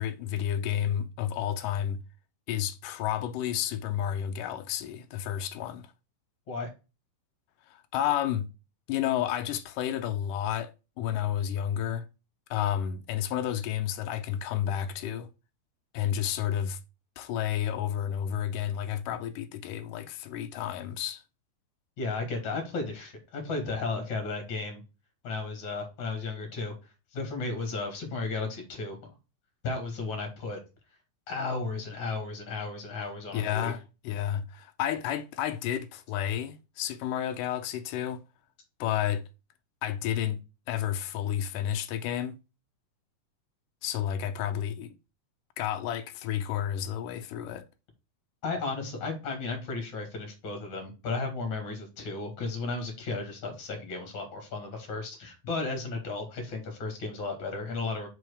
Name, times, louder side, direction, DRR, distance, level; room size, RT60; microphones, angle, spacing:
voice 1, 0.0-2.0 2.5-5.9 7.7-8.5 8.9-12.1 12.5-15.3 15.9-16.8 17.2-21.2 33.3-38.2 38.8-39.2 39.8-40.4 40.7-42.4 43.8-44.9 45.6-47.6, left 10 dB, 80° left, 2.1 m, -31 dB
voice 2, 22.0-24.8 25.2-26.7 27.1-29.1 29.6-30.6 31.3-33.7 48.4-58.1, left 3 dB, 40° left, 2.5 m, -34 dB
5.4 x 4.7 x 4.8 m
omnidirectional pair, 3.9 m